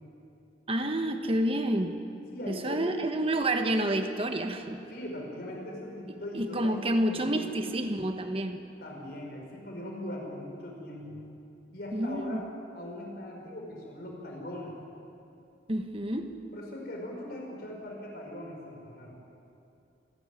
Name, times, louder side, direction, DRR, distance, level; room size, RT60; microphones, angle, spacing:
voice 1, 0.7-2.0 2.5-4.8 6.3-8.6 11.9-12.4 15.7-16.4, right 1 dB, 30° right, 6 dB, 1.3 m, -29 dB
voice 2, 2.3-2.9 4.9-7.6 8.8-11.2 11.7-12.4 12.7-14.7 16.5-19.1, left 1 dB, 55° left, -1 dB, 5.4 m, -40 dB
27.0 x 11.5 x 9.8 m, 2.7 s
head